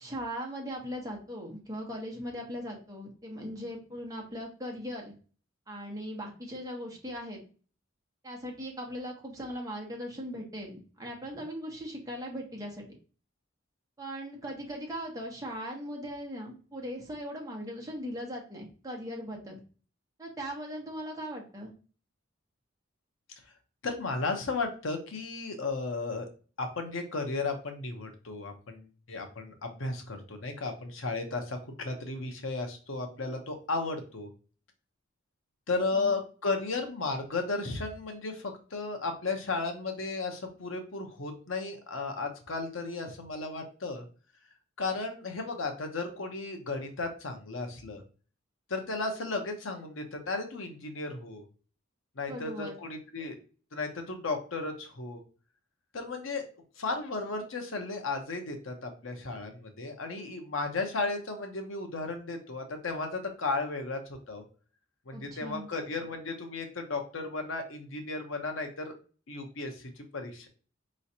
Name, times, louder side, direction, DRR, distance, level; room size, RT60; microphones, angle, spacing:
voice 1, 0.0-5.1 5.7-7.4 8.2-12.8 14.0-19.6 20.2-21.7 35.9-36.1 52.3-52.7 65.1-65.7, equal, 20° right, -1 dB, 1.1 m, -39 dB
voice 2, 23.8-26.3 26.6-34.3 35.7-44.0 44.8-48.0 48.7-51.4 52.2-53.4 53.7-55.2 55.9-56.4 56.8-64.4 65.1-68.9 69.3-70.5, left 3 dB, 75° left, 5 dB, 0.8 m, -34 dB
4.9 x 3.1 x 2.7 m, 0.38 s
head